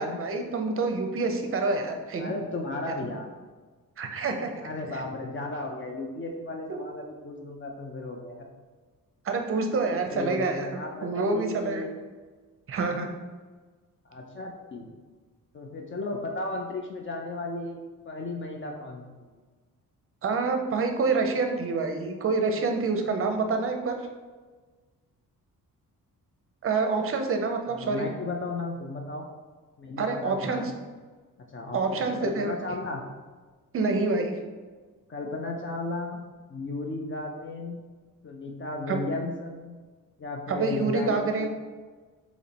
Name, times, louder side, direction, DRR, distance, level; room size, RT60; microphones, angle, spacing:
voice 1, 0.0-2.3 4.0-4.5 6.7-6.8 9.2-11.8 12.7-13.1 20.2-24.1 26.6-28.1 30.0-30.7 31.7-32.5 33.7-34.3 38.9-39.0 40.5-41.5, right 3 dB, 40° right, 5 dB, 0.5 m, -27 dB
voice 2, 2.2-3.3 4.6-8.4 10.0-11.9 14.1-14.9 15.5-17.8 18.1-19.3 27.7-29.2 29.8-30.7 31.5-33.0 35.1-36.2 36.5-37.8 38.2-39.8 40.2-41.5, left 2 dB, 35° left, 1 dB, 0.4 m, -35 dB
4.1 x 3.0 x 4.2 m, 1.4 s
wide cardioid pair, 165°, 34 cm